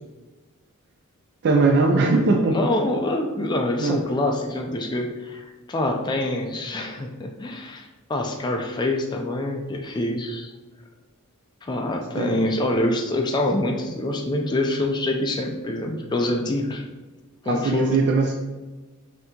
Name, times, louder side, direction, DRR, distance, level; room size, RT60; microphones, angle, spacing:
voice 1, 1.4-2.7 3.8-4.0 12.2-12.5 17.4-18.3, right 3 dB, 50° right, 2 dB, 0.4 m, -20 dB
voice 2, 2.5-10.5 11.6-16.8 17.4-17.9, left 1 dB, 20° left, 2 dB, 0.3 m, -25 dB
5.5 x 2.8 x 2.8 m, 1.2 s
head